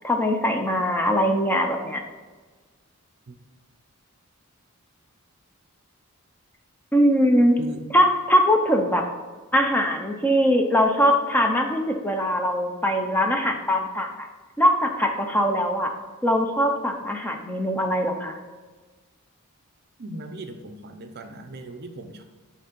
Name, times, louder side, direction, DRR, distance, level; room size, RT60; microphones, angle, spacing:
voice 1, 0.0-2.0 6.9-7.6 7.9-9.0 9.5-14.3 14.6-15.9 16.2-18.3, equal, 10° left, 3 dB, 0.6 m, -21 dB
voice 2, 7.6-7.9 20.0-22.2, right 2 dB, 50° right, 6 dB, 0.6 m, -38 dB
7.1 x 3.6 x 5.2 m, 1.4 s
head